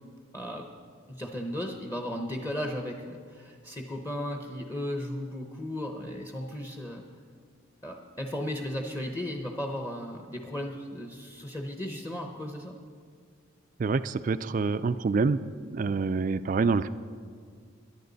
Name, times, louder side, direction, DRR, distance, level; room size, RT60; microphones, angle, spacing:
voice 1, 0.3-0.7 1.1-7.0 7.8-12.8, left 1 dB, 15° left, 3 dB, 0.8 m, -35 dB
voice 2, 13.8-15.4 15.7-16.9, right 4 dB, 40° right, 14 dB, 0.3 m, -26 dB
22.0 x 10.5 x 4.0 m, 2.1 s
head